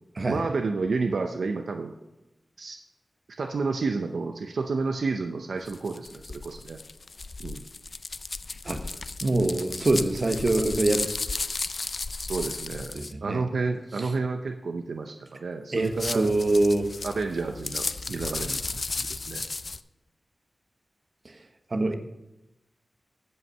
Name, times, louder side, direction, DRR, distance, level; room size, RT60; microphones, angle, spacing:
voice 1, 0.3-1.9 2.6-2.8 3.4-6.8 7.4-7.6 12.2-13.0 13.2-16.3 17.0-18.6 19.0-19.4, right 4 dB, 80° right, 5 dB, 0.6 m, -30 dB
sound 1, 5.7-13.1 15.8-19.8, left 3 dB, 55° left, 0.4 m, -34 dB
voice 2, 8.6-11.1 12.9-13.4 14.0-14.1 15.7-16.9 21.2-21.4 21.7-21.9, right 2 dB, 50° right, 6 dB, 1.1 m, -25 dB
15.0 x 5.6 x 5.5 m, 0.97 s
wide cardioid pair, 65°, 0 cm